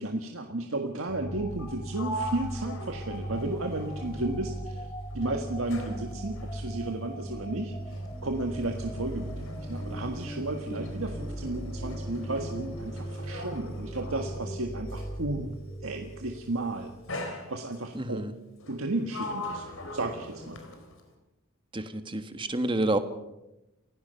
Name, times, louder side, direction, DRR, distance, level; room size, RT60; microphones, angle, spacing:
voice 1, 0.0-4.9 5.1-15.6 15.8-16.9 17.2-18.2 18.7-19.7 19.9-20.6, right 2 dB, 75° right, 3 dB, 1.7 m, -33 dB
sound 1, 1.1-17.4, right 1 dB, 20° left, 3.2 m, -38 dB
Sliding door, 1.5-4.8 5.1-15.3 16.2-16.5 17.1-18.0 18.6-21.1, left 1 dB, 70° left, 3.9 m, -42 dB
voice 2, 17.9-18.3 21.7-23.0, right 1 dB, 25° right, 9 dB, 1.5 m, -29 dB
29.0 x 16.5 x 5.7 m, 0.95 s
head